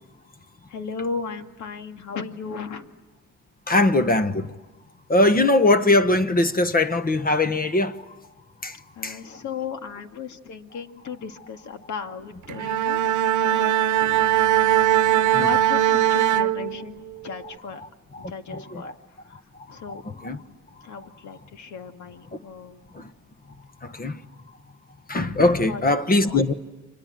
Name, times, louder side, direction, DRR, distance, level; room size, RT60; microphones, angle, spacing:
voice 1, 0.7-2.9 9.0-13.8 15.3-17.8 18.2-18.9 19.7-22.8 25.6-26.5, left 5 dB, 70° left, 2.2 m, -36 dB
voice 2, 3.7-4.5 5.1-8.0 8.6-8.8 9.0-9.2 15.3-15.5 18.2-18.9 20.2-20.4 23.0-23.1 23.8-24.2 25.1-26.5, left 2 dB, 30° left, 1.2 m, -21 dB
Bowed string instrument, 12.5-17.2, right 12 dB, 75° right, 0.9 m, -20 dB
30.0 x 25.5 x 7.6 m
cardioid pair, 90°, 30 cm